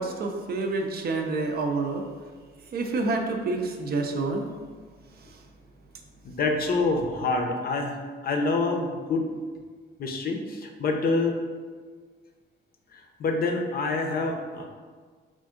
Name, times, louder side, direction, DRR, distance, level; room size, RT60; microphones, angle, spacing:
voice 1, 0.0-2.0 2.7-4.5, right 3 dB, 50° right, 4 dB, 0.5 m, -28 dB
voice 2, 6.2-9.3 10.0-11.4 12.9-14.7, left 3 dB, 50° left, 4 dB, 0.5 m, -27 dB
3.5 x 2.5 x 3.7 m, 1.5 s
cardioid pair, 90°, 20 cm